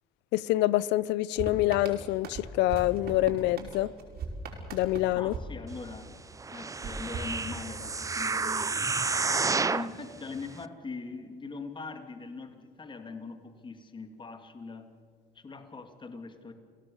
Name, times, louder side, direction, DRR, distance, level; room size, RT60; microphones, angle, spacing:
voice 1, 0.3-3.9 4.7-5.3, left 16 dB, 85° left, 0.6 m, -26 dB
sound 1, 1.4-6.2 6.8-8.0, right 3 dB, 65° right, 5.1 m, -40 dB
voice 2, 5.2-6.2 6.5-8.9 9.6-14.9 15.3-16.5, left 4 dB, 25° left, 2.4 m, -41 dB
sound 2, 6.4-10.0 10.6-10.7, right 4 dB, 20° right, 0.6 m, -30 dB
29.0 x 17.5 x 7.2 m
cardioid pair, 100°, 18 cm